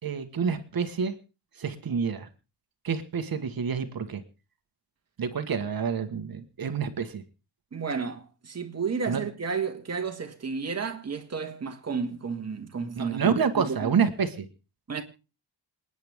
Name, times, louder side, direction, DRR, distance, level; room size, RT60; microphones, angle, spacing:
voice 1, 0.0-1.1 1.6-2.3 2.8-4.2 5.2-7.2 9.1-9.2 13.0-14.5, right 6 dB, 50° right, 1.6 m, -28 dB
voice 2, 7.7-13.8 14.9-15.0, right 5 dB, 35° right, 2.0 m, -32 dB
27.5 x 9.8 x 3.6 m
wide cardioid pair, 140°, 44 cm